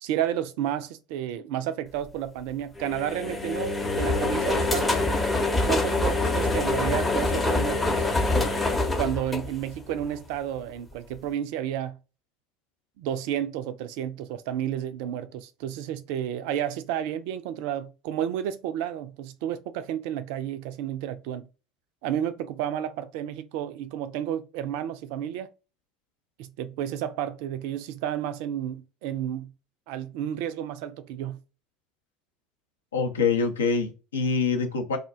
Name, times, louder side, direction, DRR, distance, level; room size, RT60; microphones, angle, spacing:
voice 1, 0.0-5.0 5.7-8.0 9.0-12.0 13.0-21.5 22.0-25.5 26.4-29.5 29.9-31.4, right 10 dB, 55° right, 0.3 m, -31 dB
sound 1, 2.8-10.1, left 2 dB, 15° left, 0.7 m, -25 dB
voice 2, 32.9-35.0, left 5 dB, 75° left, 0.5 m, -25 dB
2.4 x 2.1 x 3.5 m
figure-of-eight pair, 65°, 0 cm